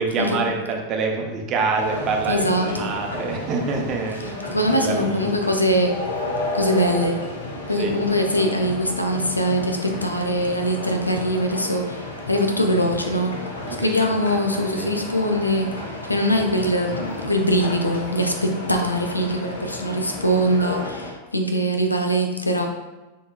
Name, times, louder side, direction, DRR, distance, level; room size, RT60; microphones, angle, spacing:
voice 1, 0.0-5.3 7.8-7.9 13.7-14.1 14.8-14.9, right 4 dB, 35° right, 1 dB, 0.8 m, -26 dB
sound 1, 1.7-21.1, left 1 dB, 65° left, 0.9 m, -32 dB
voice 2, 2.3-2.9 4.5-6.0 6.5-7.2 7.7-13.4 13.8-22.7, equal, 85° left, 3 dB, 0.5 m, -22 dB
6.6 x 3.1 x 2.2 m, 1.1 s
figure-of-eight pair, 90°, 0 cm